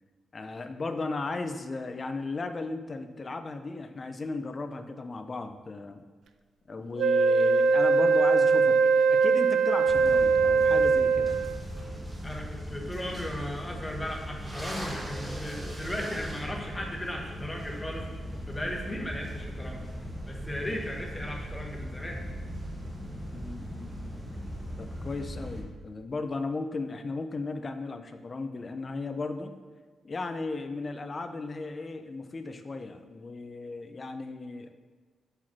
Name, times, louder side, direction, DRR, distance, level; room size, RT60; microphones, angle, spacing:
voice 1, 0.3-6.0 6.7-11.4 23.3-24.1 24.7-29.5 30.0-34.7, left 3 dB, 30° left, 8 dB, 0.5 m, -36 dB
Wind instrument woodwind instrument, 7.0-11.7, right 4 dB, 75° right, 0.4 m, -22 dB
sound 1, 9.9-25.6, equal, 15° right, 1.1 m, -38 dB
voice 2, 12.2-18.1 18.5-19.8 20.2-22.2, equal, 10° left, 0 dB, 1.0 m, -36 dB
5.6 x 4.9 x 5.8 m, 1.4 s
wide cardioid pair, 155°, 0 cm